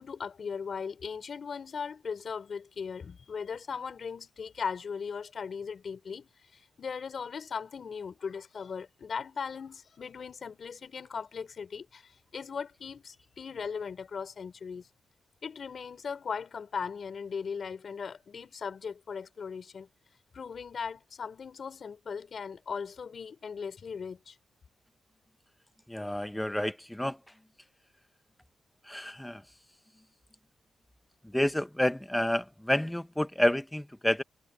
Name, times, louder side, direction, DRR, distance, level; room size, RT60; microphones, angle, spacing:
voice 1, 0.0-14.9 15.4-19.9 20.3-24.4, left 6 dB, 50° left, 4.4 m, -38 dB
voice 2, 25.9-27.2 28.8-29.4 31.2-34.2, left 1 dB, 5° left, 0.9 m, -29 dB
cardioid pair, 120°, 0 cm